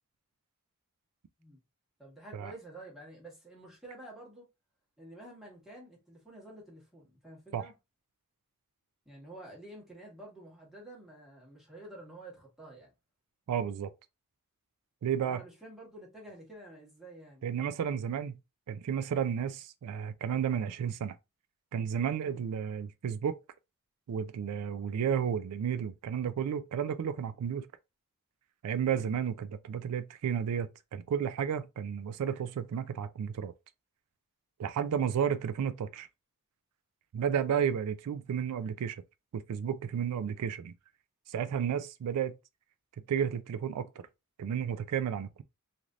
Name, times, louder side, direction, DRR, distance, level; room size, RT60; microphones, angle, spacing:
voice 1, 2.0-4.5 5.0-7.7 9.0-12.9 15.2-17.7 22.2-22.4, right 1 dB, ahead, 1.3 m, -50 dB
voice 2, 13.5-13.9 15.0-15.4 17.4-18.3 18.7-21.2 21.7-23.4 24.1-27.7 28.6-33.5 34.6-36.1 37.1-39.0 39.3-40.7 41.3-42.4 43.1-43.9 44.4-45.4, right 8 dB, 90° right, 0.4 m, -32 dB
3.2 x 2.6 x 2.4 m
head